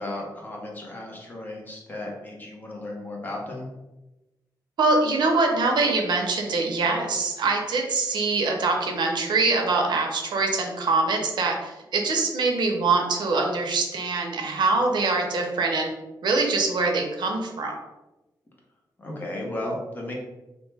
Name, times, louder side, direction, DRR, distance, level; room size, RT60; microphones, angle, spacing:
voice 1, 0.0-3.7 19.0-20.1, left 1 dB, 25° left, -2 dB, 0.7 m, -34 dB
voice 2, 4.8-15.9 16.2-17.8, right 3 dB, 85° right, 2 dB, 0.5 m, -24 dB
2.9 x 2.1 x 3.2 m, 1.0 s
wide cardioid pair, 160°, 8 cm